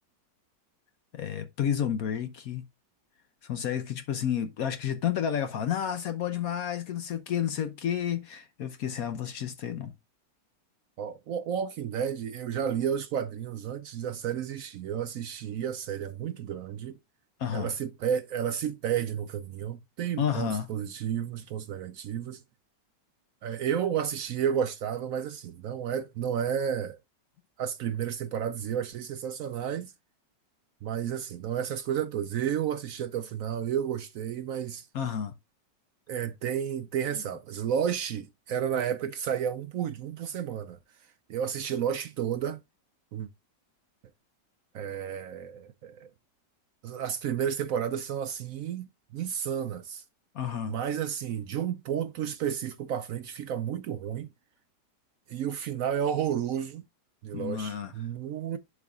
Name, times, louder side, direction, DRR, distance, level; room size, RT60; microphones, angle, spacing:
voice 1, 1.1-2.6 3.4-9.9 17.4-17.7 20.2-20.7 34.9-35.3 37.1-37.2 50.3-50.7 57.3-57.9, left 9 dB, 65° left, 1.0 m, -31 dB
voice 2, 11.0-17.0 17.5-22.4 23.4-27.0 27.6-29.9 30.8-34.9 36.1-40.8 41.3-42.6 43.1-43.3 44.7-46.1 46.8-48.9 49.1-50.0 50.7-54.3 55.3-56.8 57.2-58.6, right 8 dB, 70° right, 0.8 m, -31 dB
11.0 x 4.7 x 2.3 m
omnidirectional pair, 1.9 m